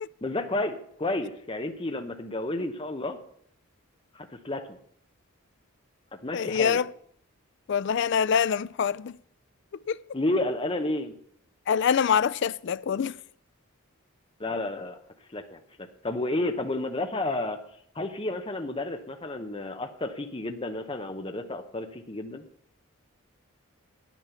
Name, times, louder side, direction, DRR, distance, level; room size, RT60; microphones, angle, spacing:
voice 1, 0.2-3.2 4.1-4.8 6.2-6.8 10.1-11.1 14.4-15.0 15.3-17.6 17.9-22.4, left 2 dB, 25° left, 0.9 m, -31 dB
voice 2, 6.3-6.9 7.7-9.2 9.9-10.0 11.7-13.2, left 7 dB, 55° left, 0.3 m, -25 dB
9.5 x 9.1 x 6.9 m
head